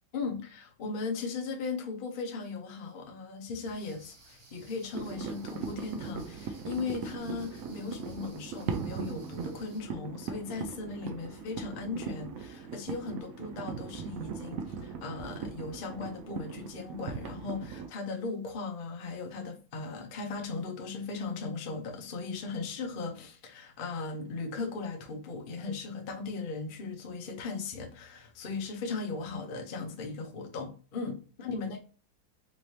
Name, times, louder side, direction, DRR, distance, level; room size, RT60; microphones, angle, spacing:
voice 1, 0.1-31.8, left 4 dB, 70° left, 0.4 m, -37 dB
sound 1, 3.6-9.8, right 2 dB, 55° right, 1.7 m, -58 dB
sound 2, 4.9-17.9, right 6 dB, 90° right, 0.7 m, -39 dB
4.1 x 3.2 x 2.7 m
omnidirectional pair, 2.1 m